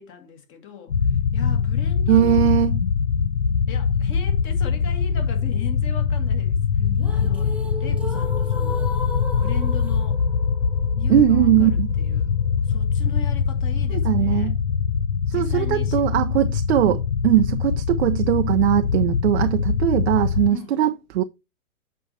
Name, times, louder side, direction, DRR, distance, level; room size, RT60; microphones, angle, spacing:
voice 1, 0.0-2.6 3.7-8.9 9.4-10.2 11.0-12.3 12.6-14.5 15.3-16.1 20.5-20.8, left 7 dB, 25° left, 1.6 m, -39 dB
sound 1, 0.9-20.5, left 6 dB, 90° left, 0.6 m, -23 dB
voice 2, 2.1-2.8 11.1-11.9 13.9-14.5 15.3-21.2, right 13 dB, 50° right, 0.6 m, -20 dB
sound 2, 6.8-12.8, equal, 5° right, 0.7 m, -36 dB
7.4 x 5.4 x 4.1 m
figure-of-eight pair, 105°, 43 cm